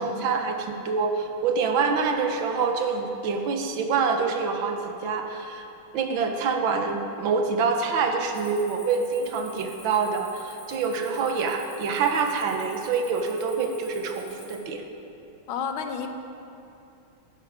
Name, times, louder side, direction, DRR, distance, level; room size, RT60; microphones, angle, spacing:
voice 1, 0.0-5.6 5.9-14.8, right 5 dB, 75° right, 4 dB, 1.7 m, -26 dB
Cricket, 8.3-14.6, left 2 dB, 45° left, 3.1 m, -48 dB
voice 2, 15.5-16.1, left 6 dB, 80° left, 6 dB, 1.6 m, -31 dB
12.0 x 11.0 x 4.9 m, 2.8 s
omnidirectional pair, 2.2 m